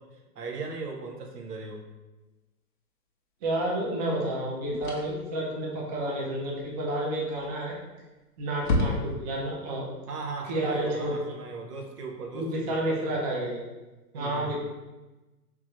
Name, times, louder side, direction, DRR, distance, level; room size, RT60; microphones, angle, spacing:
voice 1, 0.0-1.9 10.1-13.2 14.1-14.6, right 3 dB, 75° right, 1 dB, 0.9 m, -38 dB
voice 2, 3.4-7.7 8.4-9.9 10.5-11.2 12.3-13.6 14.1-14.5, right 1 dB, 25° right, -3 dB, 0.6 m, -30 dB
sound 1, 3.5-3.6 4.8-5.3 7.4-7.8 8.1-8.2 8.6-9.4, left 2 dB, 35° left, 0.5 m, -29 dB
3.5 x 3.0 x 3.1 m, 1.1 s
hypercardioid pair, 140°, 48 cm